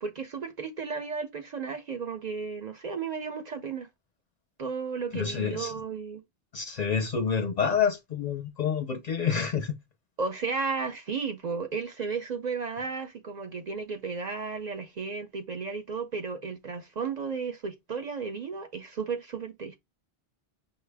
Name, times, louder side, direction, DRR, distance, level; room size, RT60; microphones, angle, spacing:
voice 1, 0.0-3.9 4.6-6.2 10.2-19.8, right 5 dB, 55° right, 0.6 m, -34 dB
voice 2, 5.1-5.7 6.5-9.8, left 6 dB, 55° left, 0.5 m, -28 dB
5.4 x 2.1 x 3.3 m
omnidirectional pair, 1.0 m